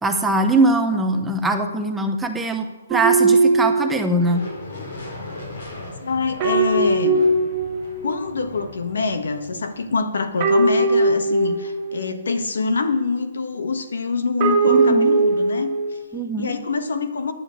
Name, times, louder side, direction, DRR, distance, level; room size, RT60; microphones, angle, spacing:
voice 1, 0.0-4.5 14.7-15.1 16.1-16.5, right 2 dB, 5° right, 4 dB, 0.8 m, -21 dB
sound 1, 2.9-4.3 6.4-8.2 10.4-12.1 14.4-16.0, right 3 dB, 20° right, 1.8 m, -19 dB
sound 2, 4.2-10.3, left 2 dB, 65° left, 4.6 m, -38 dB
voice 2, 6.0-7.2 8.0-16.0 16.4-17.3, left 4 dB, 85° left, 8 dB, 1.4 m, -25 dB
10.0 x 6.8 x 8.4 m, 1.3 s
hypercardioid pair, 165°, 0 cm